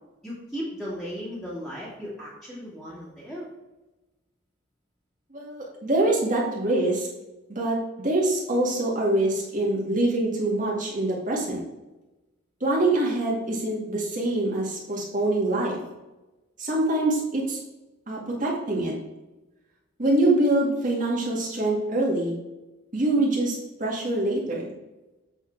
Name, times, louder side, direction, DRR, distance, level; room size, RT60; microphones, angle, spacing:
voice 1, 0.2-3.5, equal, ahead, -9 dB, 2.2 m, -36 dB
voice 2, 5.3-7.1 7.5-11.6 12.6-15.8 16.6-17.6 18.1-18.9 20.0-22.4 22.9-24.7, right 2 dB, 45° right, -3 dB, 2.1 m, -24 dB
7.8 x 4.3 x 4.6 m, 1.1 s
head